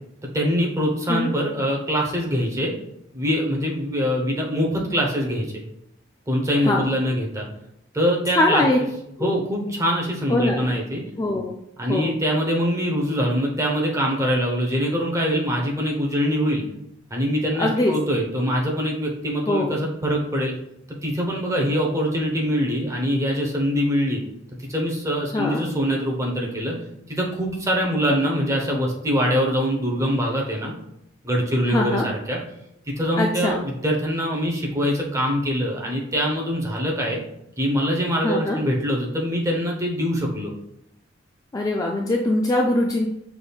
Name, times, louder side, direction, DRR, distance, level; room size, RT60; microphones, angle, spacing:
voice 1, 0.3-2.7 3.1-5.5 6.3-7.5 7.9-8.6 9.2-11.0 11.8-16.6 17.1-20.5 21.0-24.2 24.7-26.8 27.1-30.7 31.2-32.4 33.0-37.2 37.6-40.5, equal, 15° right, -2 dB, 0.8 m, -23 dB
voice 2, 8.3-8.8 9.2-9.4 10.3-10.7 11.2-11.5 11.9-12.1 17.6-17.9 19.5-19.8 25.3-25.6 31.7-32.1 33.2-33.5 38.2-38.6 41.5-43.1, left 1 dB, 20° left, 0 dB, 0.3 m, -22 dB
5.9 x 3.5 x 2.3 m, 0.78 s
head